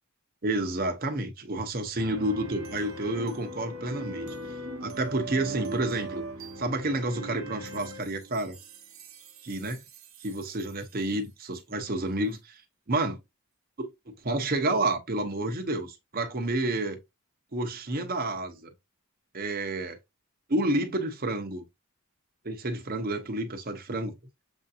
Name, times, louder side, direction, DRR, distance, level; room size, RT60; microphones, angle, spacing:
voice 1, 0.4-4.3 4.8-6.2 6.6-8.6 9.4-9.8 10.2-12.6 12.9-13.2 13.8-17.0 17.5-18.7 19.3-20.0 20.5-21.6 22.4-24.1, right 2 dB, 40° right, 0.9 m, -30 dB
sound 1, 2.0-10.8, right 2 dB, 65° right, 1.0 m, -40 dB
7.0 x 2.7 x 2.5 m
head